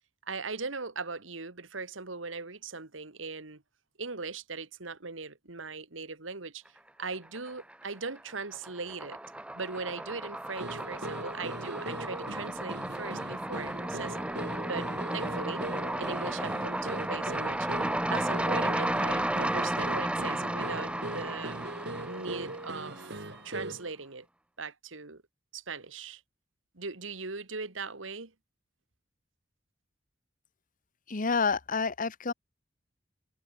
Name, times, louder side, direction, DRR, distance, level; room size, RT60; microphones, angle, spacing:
voice 1, 0.3-3.6 4.0-6.6 7.0-9.2 9.5-14.2 14.7-15.7 16.0-21.6 22.1-23.1 23.4-24.3 24.6-25.2 25.5-26.2 26.7-28.3, right 4 dB, 90° right, 2.1 m, -39 dB
sound 1, 7.1-7.9 8.2-23.3, right 1 dB, 5° right, 0.7 m, -33 dB
sound 2, 10.6-23.9, right 2 dB, 65° right, 4.5 m, -40 dB
voice 2, 31.1-32.3, left 4 dB, 45° left, 1.0 m, -28 dB
head